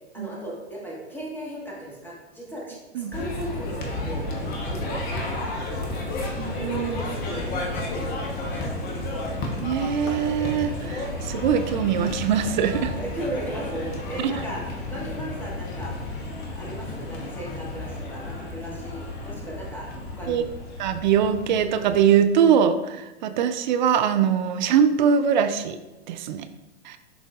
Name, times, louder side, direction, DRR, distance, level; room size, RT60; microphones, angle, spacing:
voice 1, 0.1-4.2 4.7-6.4 6.8-9.2 13.0-16.0 16.5-19.9 20.2-20.5 23.2-23.3, right 1 dB, 5° left, -4 dB, 1.4 m, -37 dB
sound 1, 3.1-22.2, left 2 dB, 30° left, 1.0 m, -32 dB
voice 2, 6.4-7.0 9.6-12.9 14.2-14.3 20.3-20.4 20.8-25.8 26.1-26.5 26.8-27.0, right 8 dB, 45° right, 10 dB, 0.5 m, -22 dB
11.0 x 3.9 x 2.4 m, 1.1 s
figure-of-eight pair, 105°, 34 cm